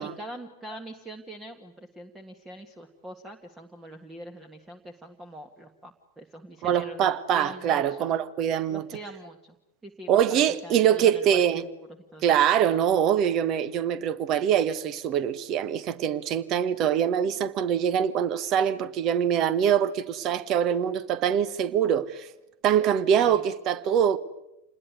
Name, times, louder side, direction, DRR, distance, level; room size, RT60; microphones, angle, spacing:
voice 1, 0.0-8.1 8.7-9.6 9.8-12.2 23.2-23.4, right 1 dB, 10° right, 1.8 m, -43 dB
voice 2, 6.6-8.8 10.1-11.6 12.2-22.3 22.6-24.2, right 9 dB, 35° right, 1.4 m, -24 dB
28.0 x 20.5 x 9.6 m
figure-of-eight pair, 90°, 0 cm